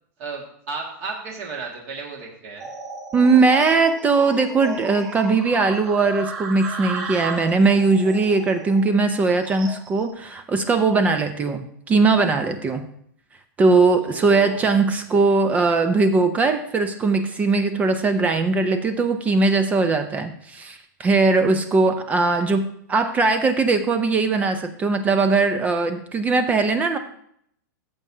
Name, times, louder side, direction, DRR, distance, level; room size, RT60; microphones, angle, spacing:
voice 1, 0.2-2.7 14.0-14.9, right 4 dB, 50° right, -1 dB, 1.9 m, -34 dB
sound 1, 2.6-10.1, right 3 dB, 30° right, 2.6 m, -35 dB
voice 2, 3.1-12.9 13.6-27.0, right 3 dB, 15° right, 9 dB, 0.5 m, -20 dB
14.0 x 7.1 x 2.7 m, 0.68 s
supercardioid pair, 155°, 10 cm